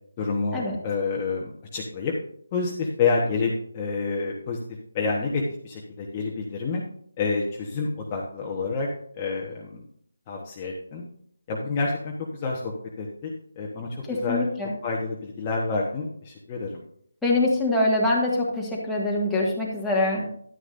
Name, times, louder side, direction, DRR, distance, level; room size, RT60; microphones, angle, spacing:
voice 1, 0.2-2.1 2.5-4.6 4.9-6.8 7.2-8.9 9.1-9.8 10.3-11.0 11.5-13.3 13.6-14.5 14.8-16.8, left 4 dB, 20° left, -2 dB, 1.2 m, -28 dB
voice 2, 14.1-14.7 17.2-20.3, left 2 dB, 5° left, -6 dB, 1.7 m, -24 dB
11.0 x 9.9 x 2.6 m, 0.64 s
figure-of-eight pair, 170°, 0 cm